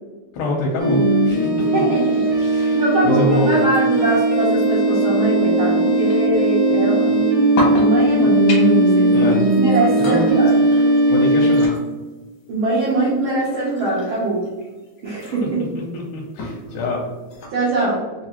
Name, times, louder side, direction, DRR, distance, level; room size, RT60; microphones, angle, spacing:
voice 1, 0.3-1.8 2.5-3.6 9.1-9.4 10.0-10.2 11.1-11.7 15.8-17.0, left 2 dB, 85° left, -2 dB, 2.1 m, -25 dB
sound 1, 0.8-11.7, right 2 dB, 55° right, 1.1 m, -17 dB
sound 2, 1.6-17.5, left 1 dB, 70° left, 1.1 m, -35 dB
voice 2, 1.7-7.2 7.7-10.6 12.5-14.4 15.0-15.6 17.5-18.0, right 2 dB, 85° right, -6 dB, 1.1 m, -22 dB
4.7 x 2.5 x 2.8 m, 1.3 s
omnidirectional pair, 3.5 m